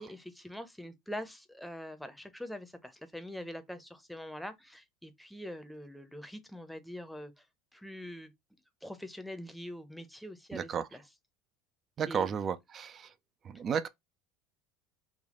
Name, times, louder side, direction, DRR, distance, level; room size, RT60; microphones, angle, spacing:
voice 1, 0.0-7.5 7.7-8.3 8.8-11.0 12.0-12.4, equal, ahead, 0.7 m, -44 dB
voice 2, 10.5-10.8 12.0-13.1 13.5-13.9, right 7 dB, 40° right, 0.4 m, -33 dB
3.5 x 2.2 x 3.7 m
hypercardioid pair, 90°, 0 cm